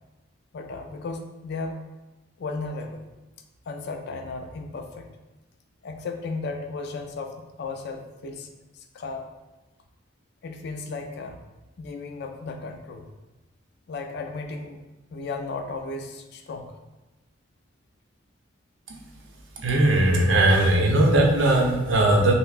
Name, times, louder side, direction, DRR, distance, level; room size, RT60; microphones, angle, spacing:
voice 1, 0.5-1.8 2.4-3.1 3.7-5.1 5.8-8.5 8.7-9.3 10.4-11.4 11.8-13.1 13.9-14.9 15.1-16.7, left 3 dB, 60° left, 4 dB, 0.4 m, -35 dB
voice 2, 19.6-22.3, right 1 dB, 75° right, 0 dB, 0.7 m, -19 dB
5.6 x 2.1 x 2.4 m, 1.1 s
head